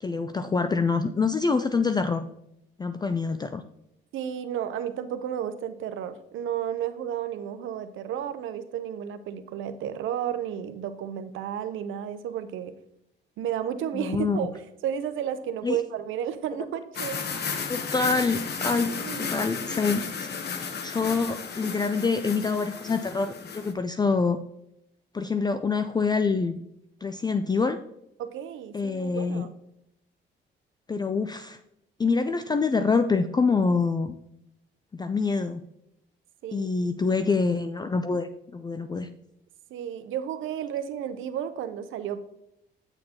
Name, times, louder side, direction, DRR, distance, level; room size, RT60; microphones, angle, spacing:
voice 1, 0.0-2.3 2.8-3.6 13.9-14.5 15.6-15.8 17.7-20.3 20.8-24.4 25.1-26.6 27.0-27.8 28.7-29.5 30.9-31.6 32.0-34.1 35.0-35.6 36.5-39.1, left 4 dB, 20° left, 9 dB, 0.4 m, -26 dB
voice 2, 4.1-12.7 13.4-14.5 14.8-17.2 17.4-17.6 19.0-19.4 28.2-29.5 36.4-36.7 39.7-42.2, right 9 dB, 80° right, 11 dB, 0.7 m, -32 dB
sound 1, 16.9-23.7, left 5 dB, 55° left, 1.0 m, -33 dB
8.8 x 6.5 x 2.8 m, 0.79 s
cardioid pair, 90°, 20 cm